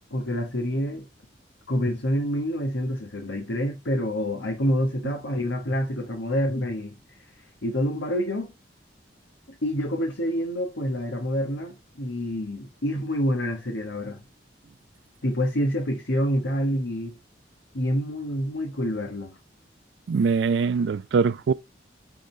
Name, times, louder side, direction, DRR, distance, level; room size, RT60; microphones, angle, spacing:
voice 1, 0.1-1.1 1.7-6.9 7.6-8.5 9.6-14.2 15.2-17.2 17.7-19.4, equal, 90° left, 1.3 m, -27 dB
voice 2, 20.1-21.5, right 5 dB, 70° right, 0.3 m, -22 dB
9.4 x 3.8 x 3.2 m
head